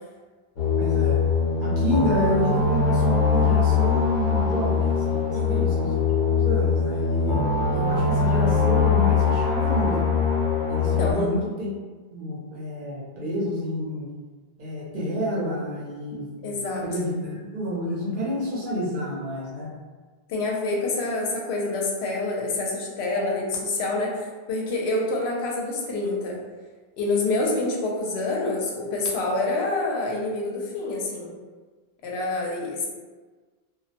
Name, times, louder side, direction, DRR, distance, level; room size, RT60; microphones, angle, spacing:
sound 1, 0.6-11.1, left 5 dB, 50° left, 0.8 m, -22 dB
voice 1, 0.8-1.2 1.6-6.0 6.4-10.1 10.7-11.7 12.1-14.1 14.6-19.7, equal, 60° right, -6 dB, 0.8 m, -29 dB
voice 2, 5.3-5.7 11.0-11.3 16.4-16.8 20.3-26.4 27.0-31.3 32.0-32.9, left 2 dB, 80° left, -2 dB, 0.8 m, -27 dB
2.2 x 2.1 x 2.7 m, 1.4 s
omnidirectional pair, 1.1 m